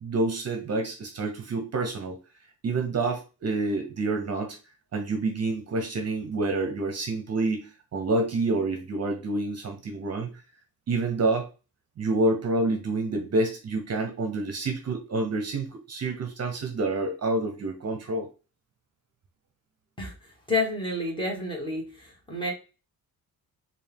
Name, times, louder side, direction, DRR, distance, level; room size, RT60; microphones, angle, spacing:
voice 1, 0.0-2.2 2.6-4.6 4.9-10.3 10.9-11.5 12.0-18.3, right 2 dB, 45° right, 4 dB, 0.8 m, -28 dB
voice 2, 20.5-21.9 22.3-22.5, left 2 dB, 15° left, -2 dB, 1.5 m, -28 dB
4.2 x 2.6 x 3.5 m, 0.32 s
cardioid pair, 135°, 36 cm